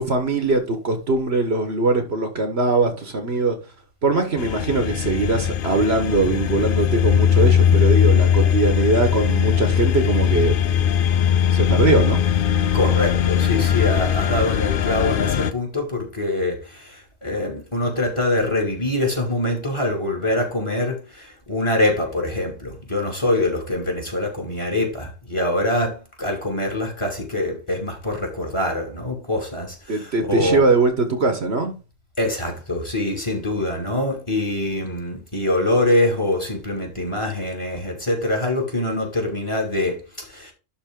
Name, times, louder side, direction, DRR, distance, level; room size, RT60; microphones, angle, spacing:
voice 1, 0.0-3.6 4.0-10.6 11.5-12.2 29.9-31.8, right 3 dB, 55° right, 1.6 m, -21 dB
sound 1, 4.4-15.5, left 9 dB, 55° left, 0.7 m, -19 dB
voice 2, 12.7-30.6 32.2-40.5, left 1 dB, 25° left, 2.7 m, -24 dB
11.5 x 4.0 x 3.8 m
omnidirectional pair, 1.3 m